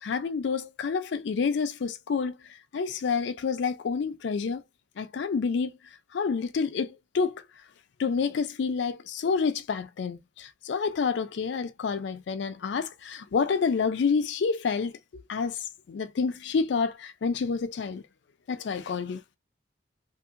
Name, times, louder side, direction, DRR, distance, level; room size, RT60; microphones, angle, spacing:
voice 1, 0.0-2.4 2.7-4.6 5.0-5.7 6.1-7.4 8.0-15.6 15.9-18.0 18.5-19.2, left 5 dB, 65° left, 0.4 m, -28 dB
2.7 x 2.7 x 2.4 m
head